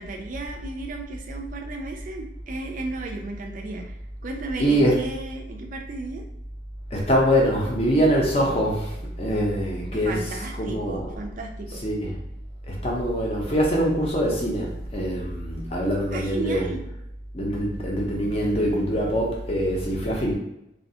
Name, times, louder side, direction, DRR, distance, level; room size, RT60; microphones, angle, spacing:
voice 1, 0.0-3.9 4.2-6.2 10.0-11.8 16.1-16.8, right 2 dB, 40° right, 2 dB, 0.3 m, -34 dB
voice 2, 4.6-4.9 6.9-10.2 10.6-11.1 11.8-12.1 12.7-16.6 17.3-20.4, equal, 30° left, -2 dB, 0.5 m, -23 dB
2.4 x 2.2 x 2.7 m, 0.84 s
head